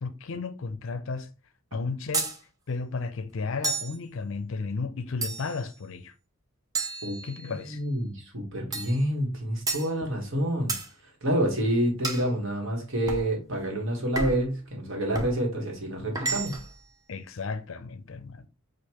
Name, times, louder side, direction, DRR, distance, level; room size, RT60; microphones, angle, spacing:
voice 1, 0.0-1.3 1.7-2.3 2.7-6.1 7.2-7.8 17.1-18.5, left 4 dB, 60° left, 0.5 m, -33 dB
sound 1, 2.1-2.4 3.6-4.0 5.2-5.7 6.7-7.6 8.7-9.0 9.7-9.9 10.7-10.9 12.0-12.3 13.1-13.3 14.1-14.5 15.1-15.4 16.1-16.7, right 3 dB, 15° right, 0.5 m, -31 dB
voice 2, 7.7-10.7 11.2-16.6, right 1 dB, 60° right, 1.4 m, -28 dB
6.5 x 2.5 x 2.9 m
head